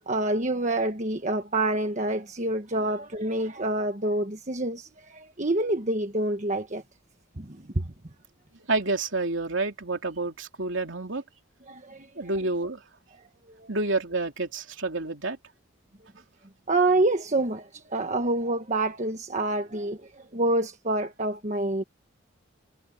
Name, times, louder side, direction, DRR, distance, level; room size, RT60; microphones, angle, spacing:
voice 1, 0.1-6.8 7.4-7.8 11.7-12.1 13.5-13.7 16.7-21.8, right 2 dB, 35° right, 1.3 m, -27 dB
voice 2, 8.7-11.2 12.2-12.8 13.7-15.4, right 3 dB, 65° right, 3.2 m, -29 dB
head